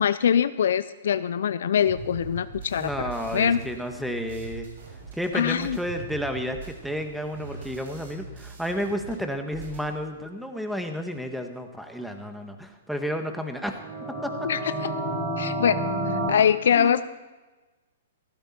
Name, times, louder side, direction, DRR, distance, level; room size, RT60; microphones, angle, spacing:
voice 1, 0.0-3.6 5.3-5.8 14.4-14.6 15.4-17.0, left 8 dB, 70° left, 14 dB, 0.5 m, -23 dB
sound 1, 1.9-9.1 9.4-9.9, right 4 dB, 70° right, 6.2 m, -41 dB
voice 2, 2.8-4.7 5.1-13.8 14.2-14.3 16.8-17.0, equal, ahead, 5 dB, 1.5 m, -31 dB
sound 2, 13.7-16.3, right 1 dB, 30° right, 6.6 m, -29 dB
16.5 x 15.0 x 4.4 m, 1.2 s
hypercardioid pair, 130°, 0 cm